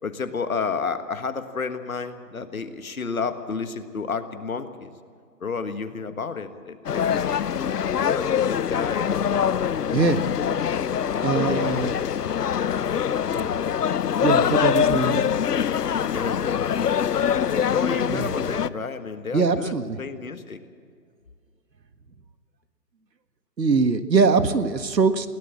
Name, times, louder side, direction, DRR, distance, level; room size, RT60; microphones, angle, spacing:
voice 1, 0.0-4.9 5.4-7.5 7.9-10.3 11.1-11.8 16.1-17.0 17.5-20.6, left 5 dB, 55° left, 9 dB, 1.7 m, -32 dB
sound 1, 6.9-18.7, left 8 dB, 75° left, 0.7 m, -24 dB
voice 2, 11.2-11.9 13.0-13.5 14.2-15.2 18.1-18.3 19.3-20.0 23.6-25.3, right 4 dB, 85° right, 10 dB, 1.7 m, -22 dB
21.5 x 17.0 x 7.3 m, 2.2 s
hypercardioid pair, 175°, 49 cm